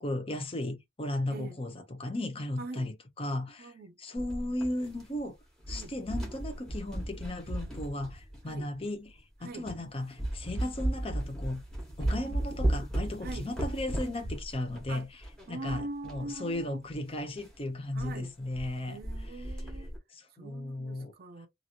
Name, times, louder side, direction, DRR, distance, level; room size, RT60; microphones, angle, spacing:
voice 1, 0.0-3.7 4.0-5.4 5.7-11.6 12.0-15.1 15.5-19.0 20.1-21.1, left 1 dB, 30° left, 0.7 m, -35 dB
voice 2, 1.3-1.6 2.6-2.9 3.6-4.0 5.7-5.9 8.4-8.7 9.4-9.7 12.0-12.2 13.2-13.5 14.9-15.1 15.5-16.8 17.9-18.3 18.9-19.9 20.4-21.5, right 2 dB, 50° right, 0.5 m, -42 dB
sound 1, 4.2-5.3 5.6-8.6 9.2-9.3 9.7-9.9 10.2-16.2 16.5-16.6 16.9-17.0 17.4-17.6 18.0-18.1 18.4-18.7 19.0-20.0, right 1 dB, 5° left, 1.2 m, -35 dB
3.0 x 2.5 x 2.8 m
head